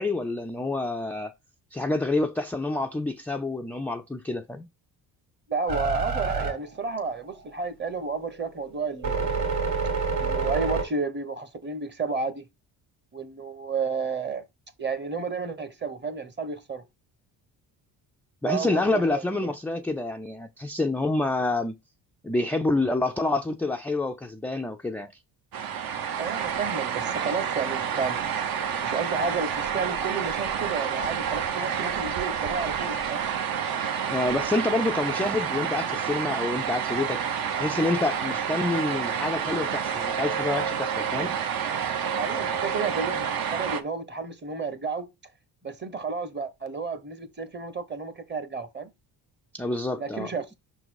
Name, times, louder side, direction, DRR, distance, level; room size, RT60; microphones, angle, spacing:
voice 1, 0.0-1.3 1.7-4.7 18.4-21.7 22.2-25.1 34.1-37.2 37.6-41.4 49.5-50.3, left 2 dB, 5° left, 0.3 m, -27 dB
voice 2, 5.5-9.4 10.2-12.4 13.1-14.4 14.8-16.8 18.4-19.2 26.2-28.2 28.8-33.3 42.2-45.1 45.6-48.9 49.9-50.5, right 4 dB, 25° right, 1.0 m, -31 dB
sound 1, 5.7-7.5 8.0-10.9, right 4 dB, 45° right, 2.3 m, -28 dB
sound 2, 25.5-43.8, right 8 dB, 60° right, 1.0 m, -29 dB
5.9 x 3.9 x 4.6 m
cardioid pair, 105°, 40 cm